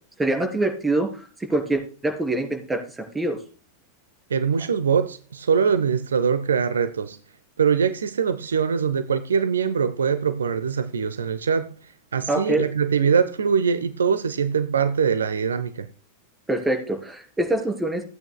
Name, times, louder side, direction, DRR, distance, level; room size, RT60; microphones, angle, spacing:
voice 1, 0.2-3.4 12.3-12.6 16.5-18.0, right 1 dB, 10° right, 3.3 m, -25 dB
voice 2, 4.3-7.2 7.6-11.8 12.1-15.9, right 6 dB, 70° right, 0.5 m, -22 dB
17.0 x 8.8 x 2.2 m
figure-of-eight pair, 90°, 0 cm